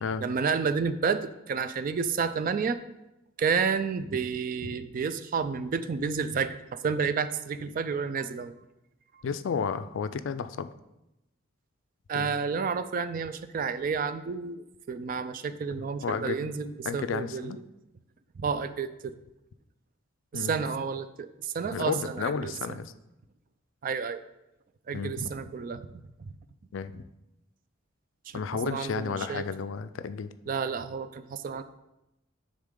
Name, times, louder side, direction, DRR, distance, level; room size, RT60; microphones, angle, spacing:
voice 1, 0.2-2.8 3.4-6.6 6.8-8.5 12.1-17.6 18.4-19.1 20.3-22.8 23.8-24.2 24.9-25.8 28.3-29.4 30.5-31.6, right 5 dB, 45° right, 12 dB, 0.3 m, -30 dB
voice 2, 9.2-10.7 12.1-12.3 16.0-16.4 16.9-17.6 20.3-20.5 21.7-22.9 24.9-25.3 26.7-27.0 28.3-30.3, left 6 dB, 65° left, 12 dB, 0.4 m, -32 dB
9.6 x 3.7 x 3.7 m, 0.91 s
head